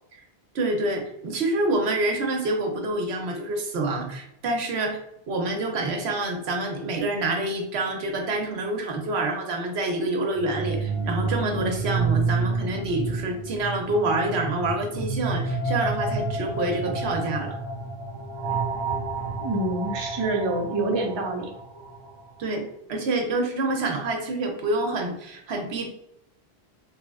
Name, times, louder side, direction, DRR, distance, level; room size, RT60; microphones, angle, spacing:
voice 1, 0.5-5.0 5.3-17.6 22.4-25.9, right 2 dB, 85° right, 2 dB, 1.0 m, -27 dB
sound 1, 10.3-22.2, right 3 dB, 55° right, 0.9 m, -29 dB
voice 2, 19.4-21.5, right 2 dB, 35° right, 1 dB, 0.5 m, -26 dB
3.1 x 2.1 x 3.5 m, 0.79 s
omnidirectional pair, 1.1 m